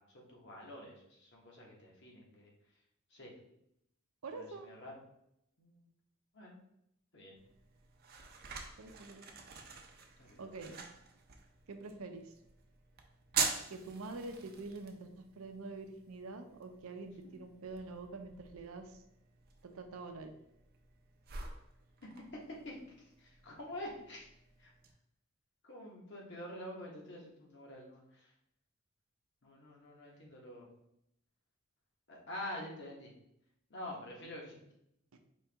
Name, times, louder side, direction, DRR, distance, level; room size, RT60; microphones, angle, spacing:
voice 1, 0.1-2.5 3.1-3.3 4.3-4.9 5.6-5.9 6.3-6.6 7.1-7.4 10.2-10.5 17.2-17.3 22.5-24.3 24.6-24.7 25.6-28.3 29.4-30.7 32.1-33.1 33.7-34.6, left 1 dB, 55° left, -2 dB, 1.2 m, -47 dB
voice 2, 4.2-4.7 8.8-9.2 10.4-10.9 11.7-12.3 13.7-15.1 15.4-19.0 19.6-20.3 35.1-35.2, right 3 dB, 85° right, 6 dB, 0.6 m, -46 dB
sound 1, 7.4-24.9, right 5 dB, 50° right, 0.6 m, -45 dB
4.5 x 2.9 x 3.4 m, 0.77 s
head